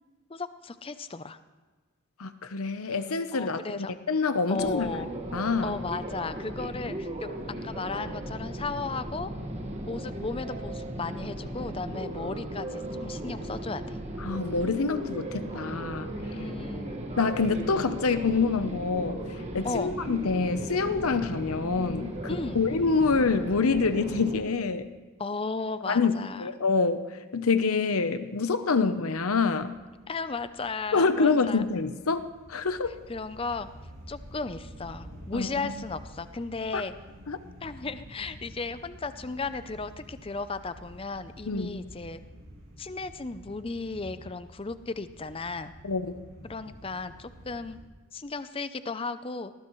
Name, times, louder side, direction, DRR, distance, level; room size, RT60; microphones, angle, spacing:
voice 1, 0.3-1.4 3.3-4.0 4.5-5.1 5.6-7.3 7.6-9.3 9.9-14.0 16.3-17.0 19.6-19.9 22.3-22.6 25.2-26.5 30.1-31.6 33.1-33.7 34.1-36.9 37.6-42.2 42.8-45.7 46.4-47.8 48.1-49.5, left 3 dB, 25° left, 12 dB, 0.5 m, -35 dB
voice 2, 2.2-4.9 5.3-5.7 14.2-16.1 17.2-19.2 19.5-24.9 25.9-27.0 27.3-29.7 30.9-33.0 35.3-35.7 36.7-36.8 37.3-37.4 41.5-41.8 45.8-46.2, left 4 dB, 75° left, 10 dB, 0.8 m, -26 dB
sound 1, 4.6-24.4, right 1 dB, 30° right, 1.6 m, -37 dB
sound 2, 28.7-47.8, equal, 75° right, 5.4 m, -49 dB
20.0 x 18.5 x 3.1 m, 1.3 s
head